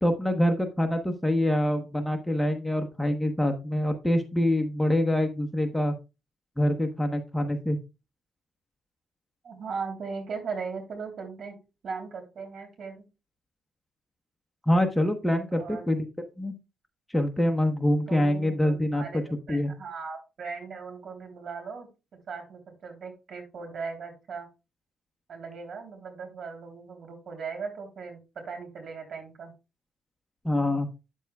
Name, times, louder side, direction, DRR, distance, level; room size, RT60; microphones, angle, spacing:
voice 1, 0.0-5.9 6.6-7.8 14.7-16.1 16.4-16.5 17.1-19.0 19.5-19.7 30.4-30.9, left 1 dB, 5° left, 4 dB, 1.0 m, -25 dB
voice 2, 9.4-11.5 11.8-13.0 15.5-15.9 18.1-21.9 22.3-24.5 25.3-29.5, right 5 dB, 60° right, 4 dB, 3.1 m, -38 dB
9.1 x 7.2 x 2.3 m, 0.27 s
cardioid pair, 90°, 0 cm